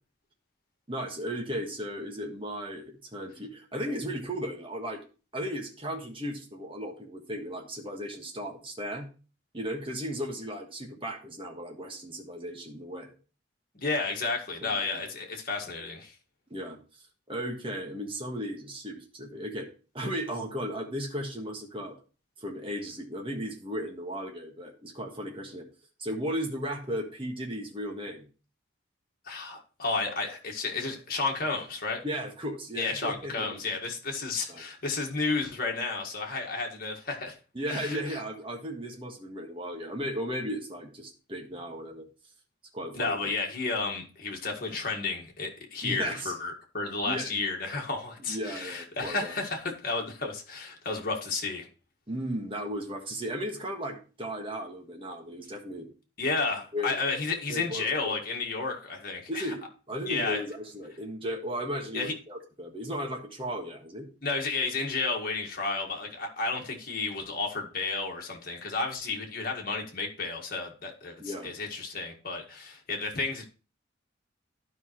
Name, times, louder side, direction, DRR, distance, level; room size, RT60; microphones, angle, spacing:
voice 1, 0.9-5.0 5.3-9.1 9.5-13.1 14.6-15.0 16.5-16.8 17.3-19.7 19.9-22.0 22.4-25.7 26.0-28.3 32.0-33.7 34.5-34.6 37.5-42.1 42.7-43.2 45.8-46.3 47.0-47.3 48.3-49.3 52.1-55.9 56.7-56.9 57.5-58.2 59.3-64.1 71.2-71.5, equal, 30° right, 1 dB, 1.5 m, -35 dB
voice 2, 13.7-16.1 29.3-32.0 32.8-37.4 37.7-38.2 42.9-51.7 56.2-59.5 60.1-60.4 61.9-62.1 64.2-73.4, left 3 dB, 50° left, 1 dB, 1.8 m, -32 dB
12.0 x 5.4 x 3.0 m, 0.35 s
head